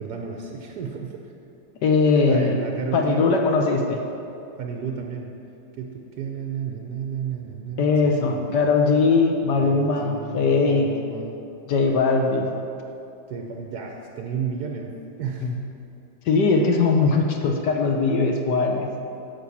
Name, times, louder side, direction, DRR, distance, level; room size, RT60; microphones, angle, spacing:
voice 1, 0.0-1.3 2.3-3.3 3.6-3.7 4.6-5.4 5.8-8.7 9.6-11.4 13.3-15.6, right 6 dB, 65° right, 2 dB, 1.0 m, -33 dB
voice 2, 1.8-2.6 2.9-4.0 7.8-10.9 11.7-12.5 15.4-15.6 16.3-18.9, left 4 dB, 65° left, 3 dB, 1.1 m, -20 dB
10.5 x 5.3 x 7.1 m, 2.7 s
omnidirectional pair, 2.4 m